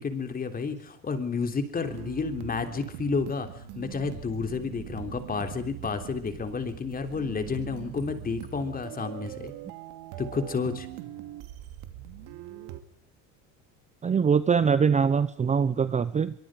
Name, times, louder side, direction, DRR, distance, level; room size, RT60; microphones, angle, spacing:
voice 1, 0.0-3.5 3.7-9.5 10.2-10.9, left 4 dB, 25° left, 8 dB, 3.4 m, -31 dB
sound 1, 1.9-12.8, right 13 dB, 70° right, 2.7 m, -42 dB
voice 2, 14.0-16.3, right 6 dB, 20° right, 14 dB, 0.8 m, -23 dB
24.0 x 23.5 x 5.1 m, 0.64 s
supercardioid pair, 125°, 38 cm